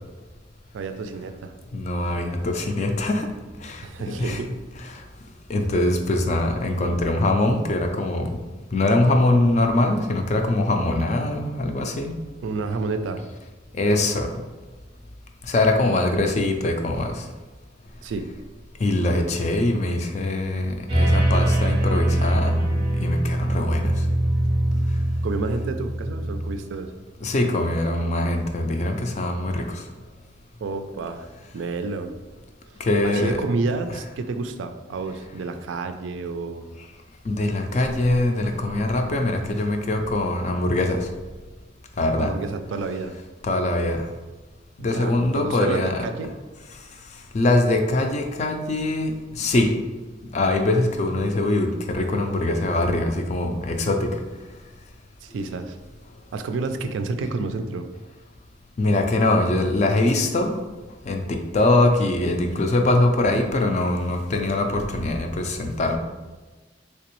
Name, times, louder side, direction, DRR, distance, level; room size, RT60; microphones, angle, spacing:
voice 1, 0.7-1.5 3.8-4.5 12.4-13.2 18.0-18.3 25.2-26.9 30.6-31.3 31.5-32.1 33.0-36.6 42.2-43.1 44.8-46.3 55.2-55.8 56.3-57.8, right 3 dB, 80° right, 8 dB, 0.3 m, -29 dB
voice 2, 1.7-3.3 3.6-3.8 4.2-4.4 4.9-5.0 5.5-8.4 8.7-12.2 13.7-14.3 15.5-17.2 18.8-22.7 23.0-24.0 27.2-29.8 32.8-33.4 37.3-41.1 42.0-42.3 43.4-44.1 44.8-46.0 47.3-49.8 50.3-54.2 58.8-60.6 61.1-66.0, left 2 dB, 35° left, 4 dB, 0.3 m, -22 dB
sound 1, 20.9-26.5, right 1 dB, 25° right, 0.6 m, -22 dB
3.3 x 2.9 x 3.0 m, 1.2 s
head